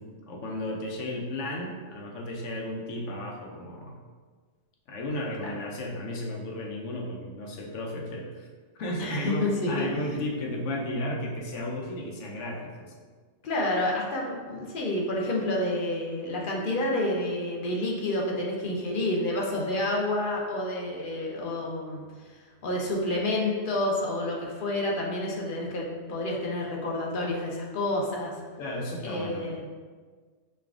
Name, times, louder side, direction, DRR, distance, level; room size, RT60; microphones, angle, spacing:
voice 1, 0.0-3.9 4.9-8.5 8.7-12.9 28.6-29.5, left 1 dB, 80° left, 0 dB, 1.0 m, -34 dB
voice 2, 9.0-9.9 13.4-22.0 22.3-28.3 29.0-29.6, left 1 dB, 55° left, -2 dB, 0.7 m, -29 dB
5.3 x 2.4 x 2.4 m, 1.5 s
omnidirectional pair, 1.2 m